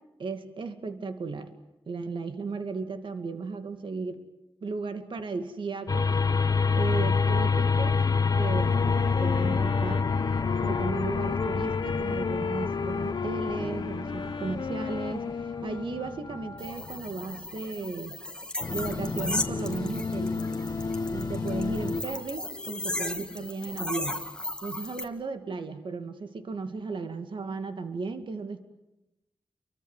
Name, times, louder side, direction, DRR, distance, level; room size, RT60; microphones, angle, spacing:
voice 1, 0.2-1.5 1.9-4.2 4.6-6.1 6.7-8.0 8.4-10.1 10.6-18.2 18.7-20.6 21.1-24.3 24.6-28.7, right 4 dB, 65° right, 8 dB, 2.4 m, -35 dB
sound 1, 5.9-17.4 18.6-22.0, left 5 dB, 45° left, 1.7 m, -28 dB
Wind instrument woodwind instrument, 8.6-16.4, left 6 dB, 65° left, 1.1 m, -34 dB
sound 2, 16.6-25.0, left 1 dB, 10° left, 2.7 m, -36 dB
30.0 x 24.0 x 7.4 m, 0.93 s
wide cardioid pair, 115°, 9 cm